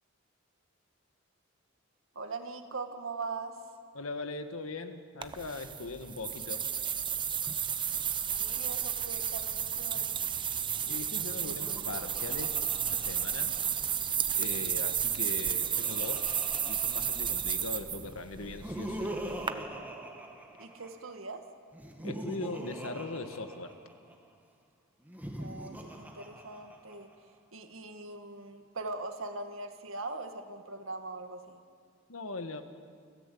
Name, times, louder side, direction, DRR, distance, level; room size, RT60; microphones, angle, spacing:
voice 1, 2.2-3.6 8.4-10.2 20.6-21.4 25.4-27.1 27.5-31.6, right 3 dB, 70° right, 6 dB, 1.9 m, -41 dB
voice 2, 3.9-6.6 10.8-12.6 12.9-13.5 14.4-16.4 16.6-19.1 22.0-23.7 32.1-32.6, left 3 dB, 85° left, 8 dB, 1.6 m, -40 dB
sound 1, 5.2-19.5, right 8 dB, 25° right, 0.8 m, -32 dB
Laughter, 11.3-14.0 15.1-17.7 18.4-21.1 21.7-24.1 25.0-27.1, right 1 dB, 10° right, 2.1 m, -43 dB
29.0 x 14.5 x 8.6 m, 2.2 s
head